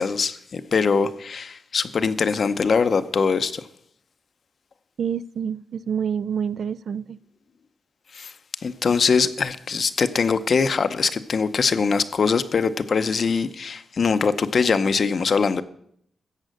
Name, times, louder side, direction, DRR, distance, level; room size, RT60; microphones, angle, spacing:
voice 1, 0.0-3.6 8.1-8.3 8.6-15.6, left 5 dB, 45° left, 0.7 m, -22 dB
voice 2, 5.0-7.2, right 7 dB, 60° right, 0.4 m, -27 dB
14.0 x 8.5 x 6.5 m
wide cardioid pair, 155°, 0 cm